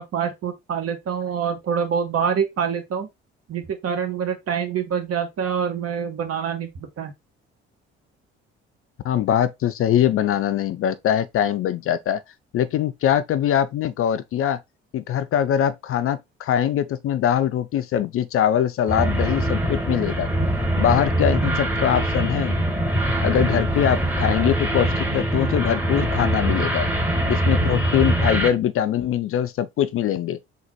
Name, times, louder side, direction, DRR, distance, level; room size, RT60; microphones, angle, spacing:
voice 1, 0.0-3.1 3.5-7.1, right 7 dB, 45° right, 1.3 m, -26 dB
voice 2, 9.0-12.2 12.5-14.6 14.9-20.3 20.8-22.6 23.2-26.9 27.3-30.4, left 10 dB, 40° left, 0.5 m, -22 dB
sound 1, 18.9-28.5, right 1 dB, 5° right, 1.3 m, -23 dB
3.9 x 2.4 x 4.4 m
figure-of-eight pair, 50°, 33 cm